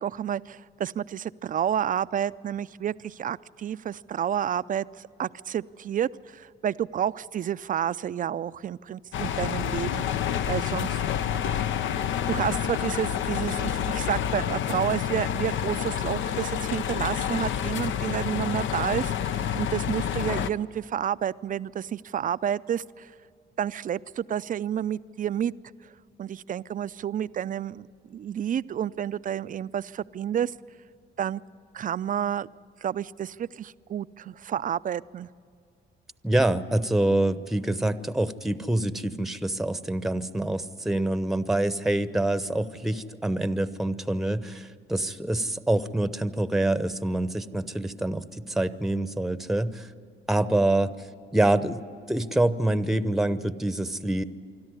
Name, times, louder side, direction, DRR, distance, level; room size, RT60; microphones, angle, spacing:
voice 1, 0.0-11.0 11.4-12.0 12.3-23.1 23.6-25.5 26.2-30.5 31.2-31.4 31.7-32.5 32.8-35.3, right 9 dB, 45° right, 16 dB, 0.5 m, -30 dB
sound 1, 9.1-20.5, left 9 dB, 70° left, 0.7 m, -28 dB
voice 2, 36.2-49.9 50.3-50.9 51.3-51.8 52.1-54.2, right 1 dB, ahead, 13 dB, 0.8 m, -26 dB
25.5 x 13.0 x 9.8 m, 2.4 s
cardioid pair, 90°, 20 cm